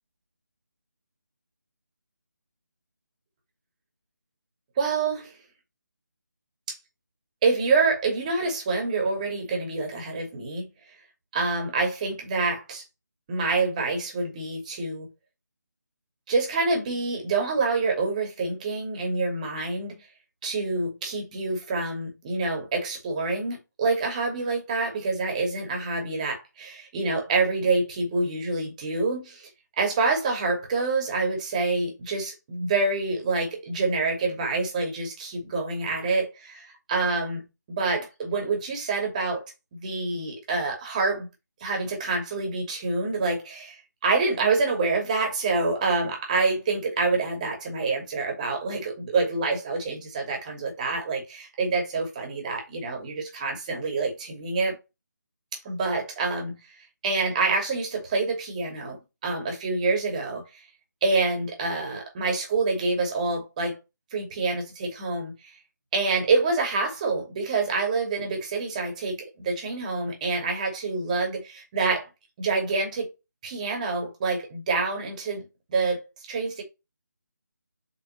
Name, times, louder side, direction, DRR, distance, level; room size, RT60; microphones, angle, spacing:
voice 1, 4.8-5.3 7.4-10.7 11.3-12.8 13.3-15.1 16.3-20.0 20.4-29.5 29.8-39.4 39.7-41.3 41.6-54.8 55.6-56.6 57.0-60.6 61.0-63.8 64.1-65.3 65.9-72.1 72.4-73.1 73.4-76.0 76.3-76.6, right 3 dB, 25° right, 2.6 m, -27 dB
8.3 x 4.5 x 3.2 m
figure-of-eight pair, 155°, 10 cm